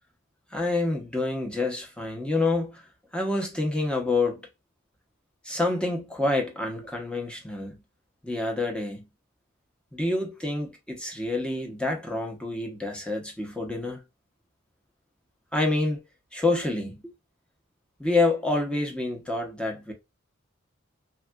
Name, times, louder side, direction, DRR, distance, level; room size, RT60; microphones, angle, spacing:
voice 1, 0.5-2.8 3.1-4.4 5.4-7.8 8.2-9.0 9.9-14.0 15.5-16.0 16.3-17.1 18.0-19.9, left 2 dB, 5° left, 0.8 m, -27 dB
3.4 x 2.4 x 2.2 m
head